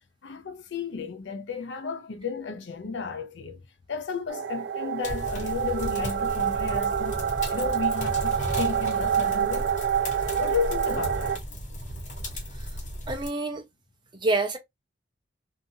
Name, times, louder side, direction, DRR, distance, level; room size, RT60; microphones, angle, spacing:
voice 1, 0.2-3.6 3.9-9.7 10.3-11.4, left 5 dB, 85° left, 0.6 m, -33 dB
sound 1, 4.3-11.4, right 8 dB, 65° right, 0.3 m, -27 dB
sound 2, 5.0-13.3, equal, 45° left, 1.2 m, -35 dB
voice 2, 13.1-13.6 14.2-14.6, right 2 dB, 25° right, 0.7 m, -26 dB
2.8 x 2.5 x 2.7 m
head